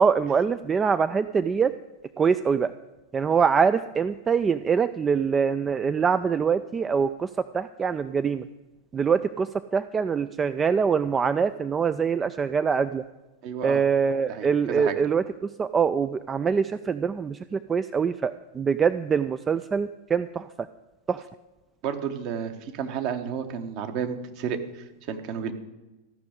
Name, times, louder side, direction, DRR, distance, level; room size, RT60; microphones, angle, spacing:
voice 1, 0.0-1.7 2.2-2.7 3.1-7.3 7.5-8.4 8.9-13.0 13.6-20.5 21.1-21.2, right 6 dB, 20° right, 13 dB, 0.4 m, -24 dB
voice 2, 13.4-13.8 14.3-15.0 21.8-25.5, right 7 dB, 45° right, 7 dB, 1.3 m, -32 dB
13.5 x 6.3 x 9.4 m, 1.1 s
figure-of-eight pair, 90°, 0 cm